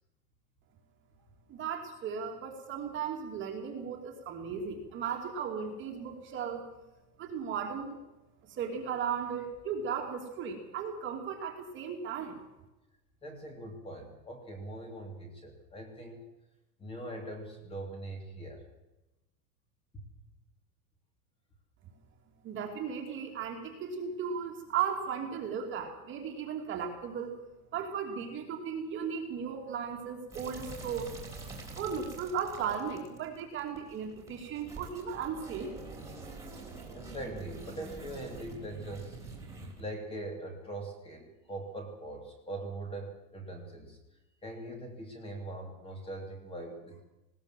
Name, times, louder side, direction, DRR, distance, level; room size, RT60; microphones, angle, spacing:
voice 1, 1.5-6.6 7.2-8.0 8.5-12.4 22.4-27.3 27.7-31.1 31.8-35.7, right 7 dB, 25° right, 3 dB, 2.8 m, -36 dB
voice 2, 13.2-16.2 16.8-18.6 27.7-27.9 36.9-39.2 39.8-44.0 44.4-47.0, right 1 dB, 10° left, 3 dB, 2.8 m, -42 dB
sound 1, 30.3-39.8, right 3 dB, 5° right, 3.4 m, -46 dB
19.5 x 18.5 x 7.6 m, 0.97 s
supercardioid pair, 175°, 49 cm